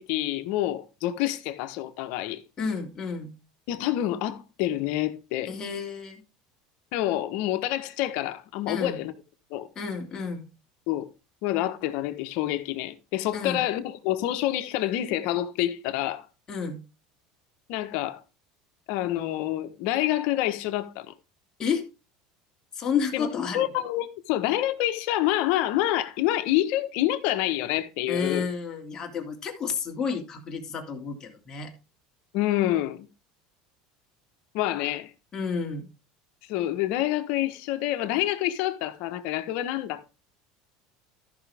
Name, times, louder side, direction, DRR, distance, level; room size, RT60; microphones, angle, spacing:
voice 1, 0.0-2.4 3.7-5.5 6.9-9.1 9.5-9.7 10.9-11.1 11.4-16.3 17.7-18.2 18.9-21.1 23.1-28.5 32.3-33.1 34.5-35.1 36.5-40.1, left 14 dB, 65° left, 1.2 m, -27 dB
voice 2, 2.6-3.4 5.5-6.2 8.7-9.0 9.8-10.5 13.3-13.6 16.5-16.8 21.6-21.8 22.7-23.6 28.1-31.7 35.3-35.9, left 6 dB, 30° left, 2.5 m, -31 dB
13.5 x 5.9 x 3.5 m
supercardioid pair, 125°, 2 cm